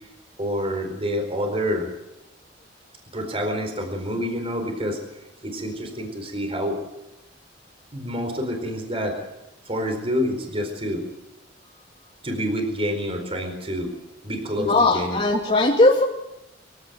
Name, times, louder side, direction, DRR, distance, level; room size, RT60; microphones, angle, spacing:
voice 1, 0.4-1.9 3.1-5.0 5.4-6.8 7.9-9.2 9.7-11.0 12.2-13.9 14.2-15.2, equal, 30° right, 5 dB, 4.4 m, -27 dB
voice 2, 14.6-16.0, left 2 dB, 35° left, -2 dB, 2.5 m, -18 dB
23.5 x 17.0 x 8.0 m, 0.90 s
head